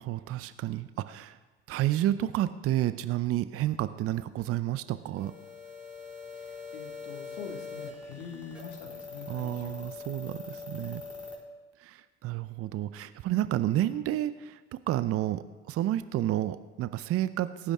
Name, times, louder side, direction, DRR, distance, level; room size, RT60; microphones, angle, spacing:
voice 1, 0.0-1.4 1.7-5.3 9.3-11.0 11.8-17.7, right 13 dB, 45° right, 14 dB, 0.6 m, -30 dB
sound 1, 5.2-11.3, left 4 dB, 5° right, 4.4 m, -43 dB
voice 2, 6.3-9.9, left 6 dB, 80° left, 3 dB, 2.1 m, -44 dB
18.0 x 9.9 x 3.6 m, 1.3 s
hypercardioid pair, 75°, 32 cm